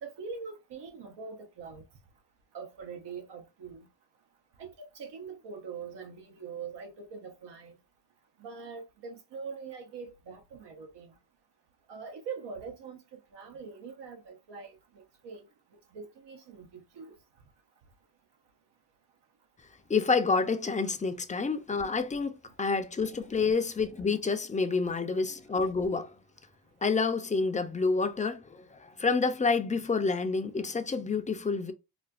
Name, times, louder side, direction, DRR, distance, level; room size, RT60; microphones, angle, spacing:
voice 1, 0.0-1.8 2.5-3.9 4.6-7.8 8.4-11.1 11.9-15.5 15.9-17.1, right 5 dB, 85° right, 0.8 m, -43 dB
voice 2, 19.9-26.1 26.8-31.7, left 4 dB, 20° left, 0.4 m, -28 dB
4.1 x 2.2 x 2.4 m
cardioid pair, 100°, 40 cm